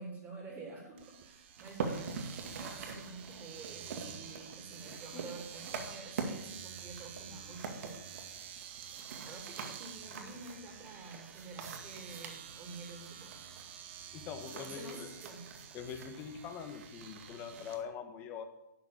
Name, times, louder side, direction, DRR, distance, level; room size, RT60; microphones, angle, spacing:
voice 1, 0.0-2.1 2.6-8.0 9.2-13.8 14.5-15.4, right 3 dB, 15° right, 0 dB, 2.8 m, -49 dB
Domestic sounds home sounds, 1.0-17.8, right 9 dB, 40° right, 1.1 m, -50 dB
sound 1, 1.6-17.8, right 4 dB, 55° right, 2.1 m, -45 dB
voice 2, 14.1-15.1 15.7-18.4, left 7 dB, 20° left, 7 dB, 1.3 m, -43 dB
12.0 x 7.2 x 8.6 m, 0.88 s
hypercardioid pair, 160°, 10 cm